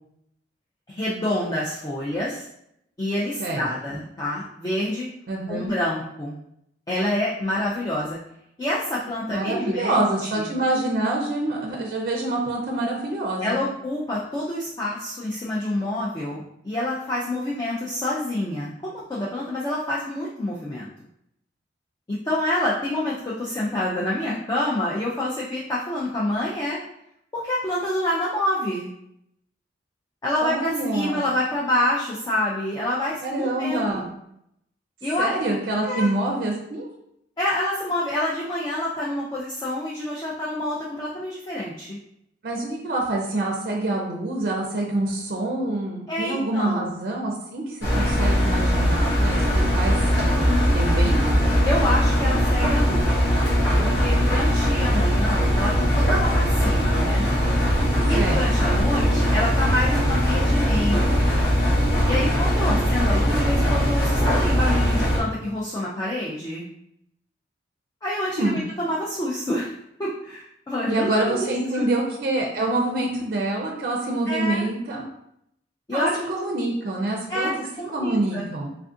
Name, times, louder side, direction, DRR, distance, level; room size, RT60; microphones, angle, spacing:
voice 1, 0.9-2.5 3.0-5.1 5.5-6.4 6.9-8.2 8.6-10.0 10.4-10.5 13.4-20.9 22.1-26.8 27.3-28.9 30.2-34.1 35.0-35.3 35.8-36.1 37.4-42.0 46.1-46.9 50.3-50.8 51.6-53.2 53.8-57.3 58.0-61.2 62.0-66.7 68.0-69.7 70.0-71.9 74.3-74.7 75.9-76.2 77.3-78.5, left 1 dB, 20° left, -6 dB, 0.4 m, -27 dB
voice 2, 5.3-5.7 9.3-13.6 30.4-31.2 33.2-34.1 35.2-36.9 42.4-50.4 50.7-51.5 58.1-58.7 62.1-62.8 68.4-68.6 70.9-75.0 75.9-77.5 77.9-78.7, right 2 dB, 50° right, 0 dB, 0.4 m, -26 dB
Engine, 47.8-65.2, equal, 75° left, 1.0 m, -20 dB
3.4 x 2.4 x 2.5 m, 0.76 s
head